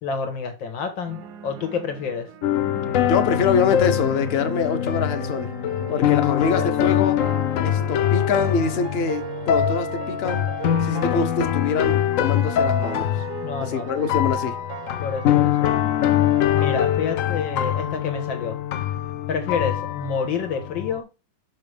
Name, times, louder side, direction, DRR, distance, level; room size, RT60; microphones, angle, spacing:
voice 1, 0.0-2.3 5.9-7.0 13.4-14.0 15.0-15.7 16.5-18.6 19.3-21.1, left 5 dB, 90° left, 2.1 m, -29 dB
sound 1, 1.0-17.1, right 8 dB, 60° right, 0.9 m, -38 dB
sound 2, 2.4-21.0, left 11 dB, 75° left, 0.7 m, -23 dB
voice 2, 3.1-5.5 5.9-7.2 7.6-10.5 10.8-13.1 13.6-14.6, left 5 dB, 45° left, 0.9 m, -24 dB
6.1 x 5.9 x 3.3 m
omnidirectional pair, 2.0 m